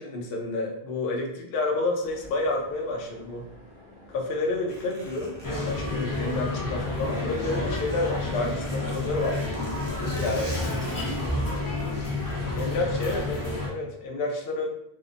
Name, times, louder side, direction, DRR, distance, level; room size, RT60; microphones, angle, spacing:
voice 1, 0.0-3.4 4.1-9.4 10.0-10.4 12.6-14.7, left 2 dB, 70° left, 0 dB, 0.7 m, -29 dB
sound 1, 2.0-12.5, equal, 50° left, 1.1 m, -50 dB
Zipper (clothing), 4.7-7.1 7.4-11.4 12.0-12.3, left 1 dB, 10° right, 0.7 m, -46 dB
sound 2, 5.4-13.7, left 2 dB, 30° left, 0.4 m, -30 dB
voice 2, 10.3-12.2, right 2 dB, 85° right, 0 dB, 0.8 m, -41 dB
2.6 x 2.0 x 2.5 m, 0.79 s
omnidirectional pair, 1.0 m